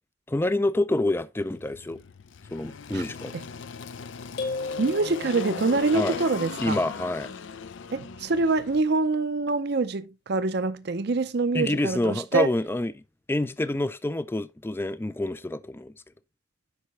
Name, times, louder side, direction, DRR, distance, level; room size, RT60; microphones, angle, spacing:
voice 1, 0.3-2.0 2.5-3.3 5.9-6.2 6.6-7.3 11.5-13.0 13.3-15.9, left 1 dB, 10° left, 0.4 m, -27 dB
Engine, 1.4-8.8, left 5 dB, 75° left, 0.5 m, -38 dB
sound 1, 4.4-5.9, left 3 dB, 55° left, 2.1 m, -34 dB
voice 2, 4.8-6.8 7.9-12.5, right 3 dB, 55° right, 0.6 m, -25 dB
8.3 x 5.6 x 3.1 m
head